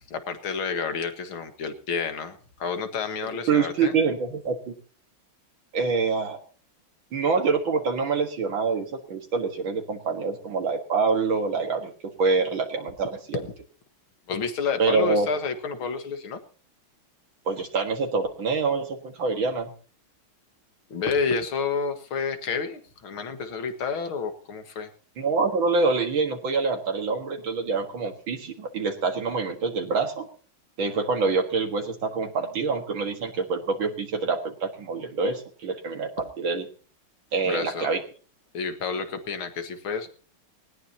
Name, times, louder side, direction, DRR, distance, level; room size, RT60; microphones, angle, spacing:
voice 1, 0.1-3.9 14.3-16.4 20.9-24.9 37.4-37.9 38.5-40.1, left 5 dB, 80° left, 8 dB, 2.6 m, -30 dB
voice 2, 3.2-4.7 5.7-6.4 7.1-13.4 14.8-15.3 17.5-19.7 25.2-30.3 30.8-36.6 37.3-38.0, right 4 dB, 70° right, 3 dB, 2.4 m, -26 dB
19.0 x 18.0 x 2.9 m, 0.40 s
omnidirectional pair, 2.2 m